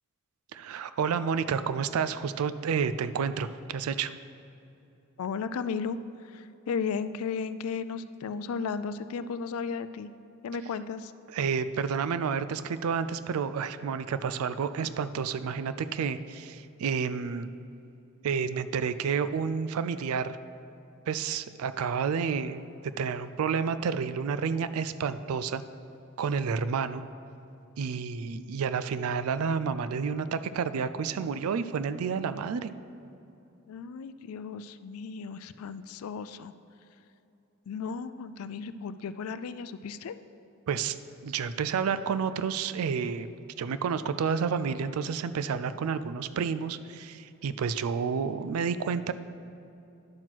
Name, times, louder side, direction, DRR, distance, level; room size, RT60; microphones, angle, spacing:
voice 1, 0.5-4.1 11.3-17.5 18.2-20.4 21.1-22.6 23.0-25.6 26.2-27.0 27.8-32.7 40.7-41.0 41.2-43.3 43.6-49.1, right 6 dB, 85° right, 13 dB, 0.4 m, -30 dB
voice 2, 5.2-10.1 10.4-11.1 33.7-36.5 37.7-40.2, left 5 dB, 85° left, 13 dB, 0.4 m, -35 dB
10.5 x 5.9 x 4.5 m, 2.8 s
head